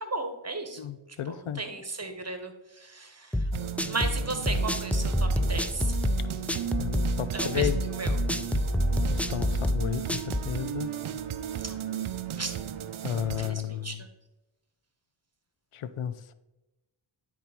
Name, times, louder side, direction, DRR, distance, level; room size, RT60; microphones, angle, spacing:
voice 1, 0.0-0.8 1.3-3.5 3.9-5.9 6.5-6.9 7.3-8.1 11.6-11.9 12.4-12.5 13.4-14.1, right 3 dB, 30° right, 6 dB, 1.2 m, -36 dB
voice 2, 0.8-1.6 6.8-7.8 9.1-10.9 13.0-14.0 15.7-16.3, left 10 dB, 90° left, 13 dB, 0.6 m, -33 dB
sound 1, 3.3-10.5, left 1 dB, 5° left, 0.4 m, -27 dB
sound 2, 3.5-13.5, right 9 dB, 75° right, 0.6 m, -35 dB
9.8 x 4.1 x 4.4 m, 1.0 s
cardioid pair, 40°, 49 cm